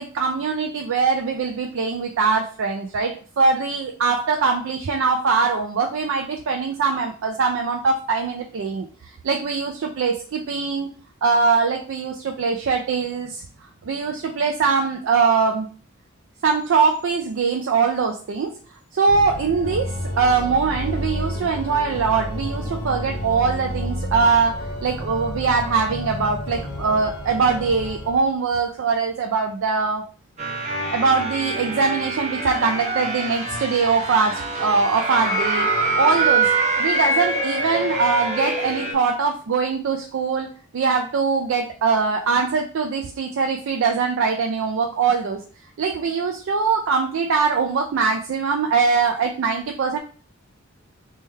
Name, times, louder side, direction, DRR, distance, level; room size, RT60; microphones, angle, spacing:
voice 1, 0.0-8.9 9.2-10.9 11.2-13.4 13.9-15.7 16.4-18.5 18.9-30.0 30.9-35.7 36.0-36.5 36.8-45.4 45.8-50.0, right 5 dB, 70° right, 2 dB, 0.4 m, -22 dB
Organ, 19.0-28.3, equal, 75° left, 0.7 m, -30 dB
sound 1, 30.4-38.9, right 2 dB, 35° right, 0.7 m, -24 dB
3.2 x 2.2 x 3.2 m, 0.40 s
head